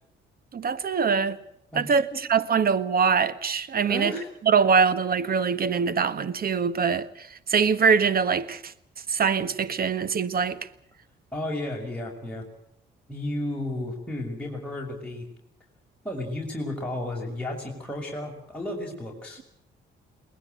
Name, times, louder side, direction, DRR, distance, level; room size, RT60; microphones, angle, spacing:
voice 1, 0.5-1.4 1.7-4.1 4.4-8.7 9.1-10.7, right 6 dB, 50° right, 1.5 m, -23 dB
voice 2, 3.8-4.3 11.3-12.4 13.1-15.3 16.0-19.4, left 1 dB, 5° left, 6.2 m, -33 dB
22.0 x 20.0 x 7.8 m
cardioid pair, 90°, 20 cm